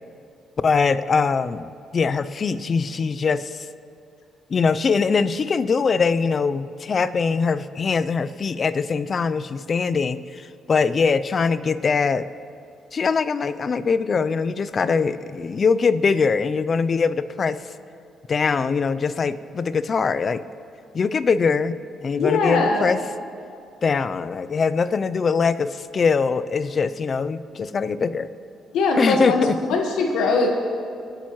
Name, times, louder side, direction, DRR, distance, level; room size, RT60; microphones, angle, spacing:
voice 1, 0.6-3.7 4.5-12.3 12.9-17.6 18.3-20.4 20.9-21.8 22.0-23.0 23.8-28.3 29.0-29.6, left 5 dB, 45° left, 13 dB, 0.4 m, -22 dB
voice 2, 22.2-22.8 28.7-30.5, left 3 dB, 85° left, 2 dB, 1.4 m, -21 dB
21.0 x 8.9 x 3.1 m, 2.4 s
cardioid pair, 90°, 0 cm